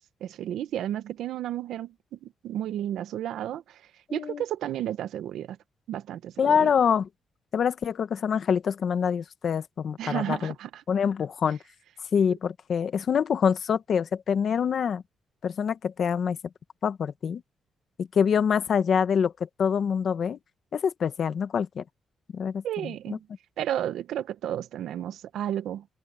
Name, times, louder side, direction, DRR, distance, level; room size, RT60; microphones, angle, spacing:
voice 1, 0.2-3.8 4.1-5.6 5.9-6.7 10.0-10.8 22.6-23.3 23.6-25.9, right 11 dB, 85° right, 1.1 m, -32 dB
voice 2, 4.1-4.4 6.4-7.1 7.5-10.5 10.9-11.6 12.1-15.0 15.4-16.4 16.8-17.4 18.0-19.3 19.6-20.4 20.7-21.8 22.3-23.2, left 7 dB, 50° left, 1.3 m, -25 dB
cardioid pair, 145°, 0 cm